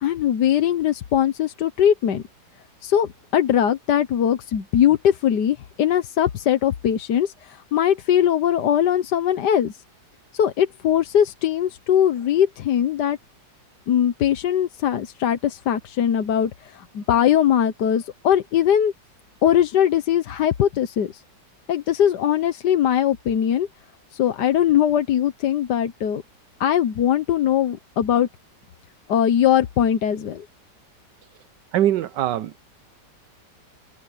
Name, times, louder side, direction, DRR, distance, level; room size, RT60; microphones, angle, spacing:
voice 1, 0.0-2.2 2.8-9.7 10.3-13.2 13.9-18.9 19.4-21.2 21.7-23.7 24.1-26.2 26.6-28.3 29.1-30.4, left 10 dB, 70° left, 1.6 m, -20 dB
voice 2, 31.7-32.7, right 12 dB, 80° right, 1.4 m, -22 dB
omnidirectional pair, 1.9 m